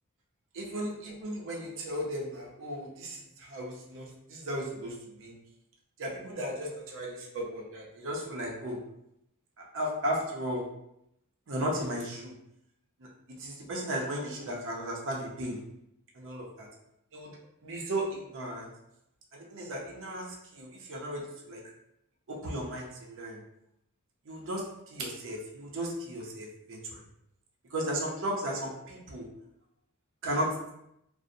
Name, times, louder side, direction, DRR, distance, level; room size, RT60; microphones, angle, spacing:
voice 1, 0.5-5.3 6.0-8.8 9.6-10.7 11.5-12.3 13.4-15.6 16.2-16.7 17.1-17.4 17.6-18.7 19.3-21.7 22.3-23.4 24.3-27.0 27.7-29.3 30.2-30.7, right 1 dB, 60° right, -1 dB, 0.6 m, -35 dB
2.5 x 2.0 x 2.6 m, 0.80 s
head